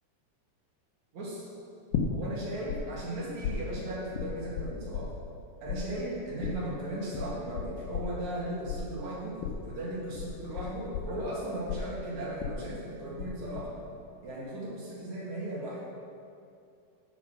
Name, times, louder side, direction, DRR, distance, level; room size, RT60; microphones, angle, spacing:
voice 1, 1.1-1.4 2.1-5.1 5.6-13.7 14.2-15.8, right 1 dB, 60° right, -6 dB, 3.3 m, -36 dB
sound 1, 1.9-2.8 3.0-5.4 5.7-13.3 13.6-14.1, left 8 dB, 80° left, 2.5 m, -35 dB
9.8 x 6.5 x 6.2 m, 2.5 s
omnidirectional pair, 3.8 m